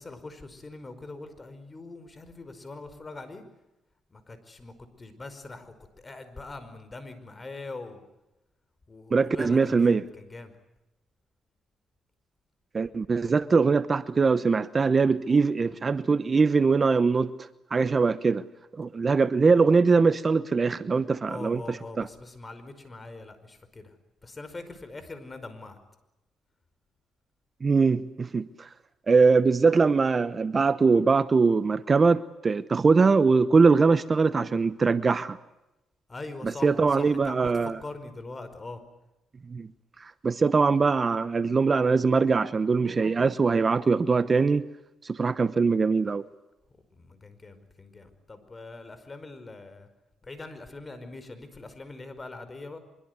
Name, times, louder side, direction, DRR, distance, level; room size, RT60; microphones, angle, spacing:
voice 1, 0.0-3.4 4.1-8.0 8.9-10.5 21.3-23.9 24.2-25.8 36.1-38.8 47.0-49.9 50.2-52.8, left 3 dB, 25° left, 5.1 m, -42 dB
voice 2, 9.1-10.0 12.7-17.3 17.7-18.4 18.7-22.1 27.6-28.7 29.1-35.4 36.4-37.8 39.5-39.7 40.0-44.7 45.0-46.3, right 4 dB, 35° right, 0.9 m, -22 dB
25.0 x 23.0 x 8.1 m
cardioid pair, 90°, 0 cm